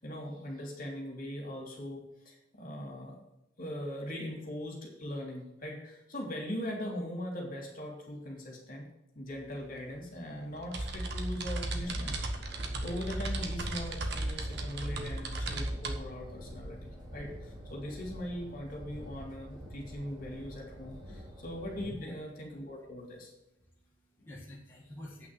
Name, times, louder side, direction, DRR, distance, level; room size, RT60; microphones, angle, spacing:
voice 1, 0.0-3.2 3.6-8.9 9.1-12.2 12.5-23.3 24.2-24.3, equal, 45° left, -1 dB, 3.2 m, -40 dB
sound 1, 9.3-9.4 9.7-15.9, right 2 dB, 55° right, 1.3 m, -35 dB
sound 2, 11.8-21.9, equal, 20° right, 2.5 m, -47 dB
voice 2, 23.5-25.3, left 1 dB, 10° left, -6 dB, 1.8 m, -48 dB
8.6 x 6.1 x 7.7 m, 0.87 s
head